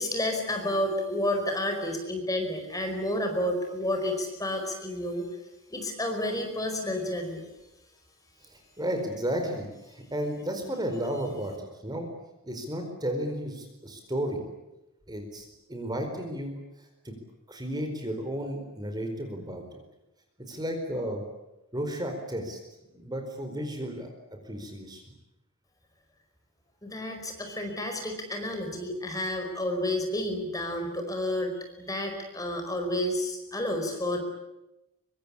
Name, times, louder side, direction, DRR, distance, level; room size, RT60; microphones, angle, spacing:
voice 1, 0.0-5.3 5.7-7.4 26.8-31.5 31.8-34.2, left 1 dB, 15° left, 4 dB, 4.9 m, -30 dB
voice 2, 8.8-12.1 12.4-14.4 15.1-16.6 17.0-17.1 17.5-19.6 20.5-21.2 21.7-22.6 22.9-24.1 24.5-25.0, equal, 20° right, 5 dB, 4.5 m, -33 dB
25.0 x 24.5 x 8.7 m, 0.95 s
head